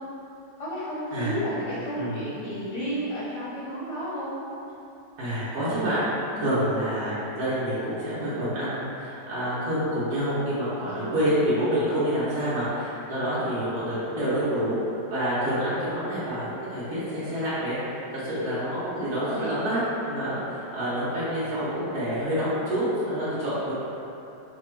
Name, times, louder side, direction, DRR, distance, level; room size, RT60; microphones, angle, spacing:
voice 1, 0.6-4.3 6.3-6.6 10.8-11.1 18.7-18.8 19.4-19.5, equal, 55° left, -9 dB, 0.9 m, -32 dB
voice 2, 5.2-6.0 6.3-14.8 15.1-23.7, equal, 65° right, -12 dB, 1.4 m, -27 dB
3.4 x 2.3 x 4.4 m, 2.9 s
omnidirectional pair, 1.8 m